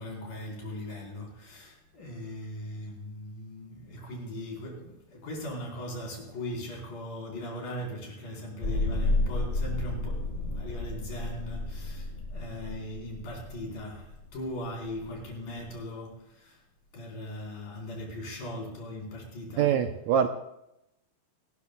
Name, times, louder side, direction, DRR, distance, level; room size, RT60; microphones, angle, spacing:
voice 1, 0.0-16.6 16.9-19.9, left 1 dB, 70° left, -1 dB, 6.0 m, -39 dB
sound 1, 8.6-15.8, left 2 dB, 45° left, 0.9 m, -32 dB
voice 2, 19.6-20.3, right 8 dB, 80° right, 6 dB, 1.7 m, -24 dB
29.0 x 13.0 x 2.3 m, 0.83 s
omnidirectional pair, 4.1 m